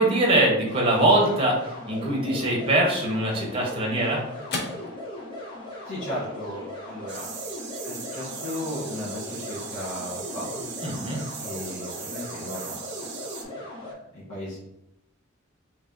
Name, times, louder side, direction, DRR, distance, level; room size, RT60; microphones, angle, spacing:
voice 1, 0.0-4.2 10.8-11.2, right 1 dB, 25° right, -2 dB, 0.9 m, -22 dB
sound 1, 0.7-13.9, left 1 dB, 25° left, 0.9 m, -38 dB
sound 2, 3.2-11.8, left 2 dB, 55° left, 0.6 m, -44 dB
voice 2, 5.8-7.3 7.8-10.6 11.4-13.1 13.4-13.5 13.8-13.9 14.1-14.6, left 1 dB, 80° left, -9 dB, 1.2 m, -36 dB
sound 3, 7.1-13.4, right 6 dB, 60° right, 0.6 m, -39 dB
3.0 x 2.7 x 3.7 m, 0.87 s
head